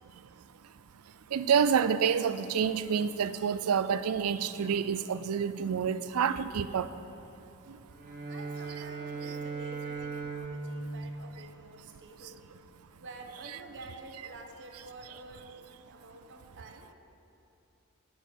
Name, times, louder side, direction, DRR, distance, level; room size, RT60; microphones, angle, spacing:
voice 1, 1.3-6.9, right 7 dB, 80° right, 13 dB, 0.4 m, -28 dB
Bowed string instrument, 7.9-12.0, right 4 dB, 40° right, 1.3 m, -39 dB
voice 2, 8.3-12.4 13.0-16.9, right 2 dB, 55° right, 3 dB, 1.1 m, -49 dB
9.2 x 6.4 x 7.9 m, 2.8 s
head